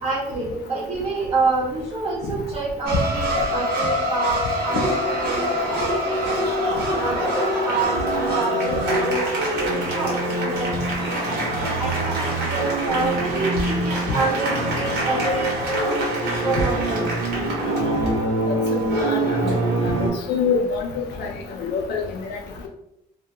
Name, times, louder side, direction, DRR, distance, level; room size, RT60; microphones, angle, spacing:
voice 1, 0.0-4.4 4.6-6.4 6.9-9.2 9.6-10.8 11.8-16.0 16.4-17.1, right 3 dB, 30° right, -10 dB, 0.9 m, -27 dB
sound 1, 2.9-20.1, right 1 dB, 70° right, 1.0 m, -24 dB
voice 2, 18.7-19.5 20.3-21.3 21.6-22.0 22.3-22.4, left 5 dB, 80° left, 2 dB, 0.5 m, -25 dB
2.2 x 2.1 x 2.8 m, 0.80 s
cardioid pair, 110°, 17 cm